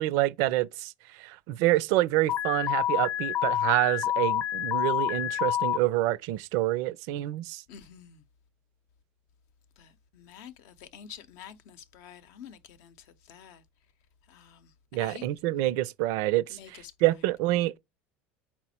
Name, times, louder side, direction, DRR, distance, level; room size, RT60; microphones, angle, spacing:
voice 1, 0.0-7.6 14.9-17.8, right 16 dB, 65° right, 0.4 m, -27 dB
Alarm, 2.3-5.8, left 12 dB, 30° left, 0.4 m, -28 dB
voice 2, 7.7-8.2 9.8-13.6 14.3-15.3 16.5-16.9, left 8 dB, 65° left, 0.6 m, -48 dB
4.2 x 2.0 x 4.2 m
supercardioid pair, 95°, 6 cm